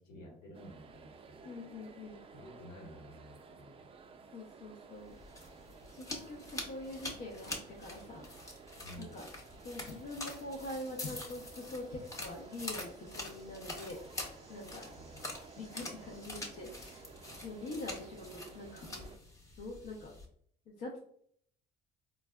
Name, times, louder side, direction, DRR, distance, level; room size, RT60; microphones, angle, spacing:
voice 1, 0.0-1.4 2.3-3.7 8.8-9.2 15.0-15.4, equal, 85° left, -1 dB, 1.3 m, -52 dB
sound 1, 0.5-19.2, right 5 dB, 35° right, 0.4 m, -55 dB
voice 2, 1.4-2.2 4.3-5.2 6.0-8.3 9.0-9.3 9.6-14.2 14.5-14.9 15.6-17.0 17.4-19.1 19.6-20.1 20.7-21.0, left 2 dB, 65° left, -3 dB, 0.7 m, -44 dB
sound 2, 5.0-20.3, left 2 dB, 20° left, 0.8 m, -46 dB
3.9 x 2.3 x 2.2 m, 0.64 s
cardioid pair, 110°, 17 cm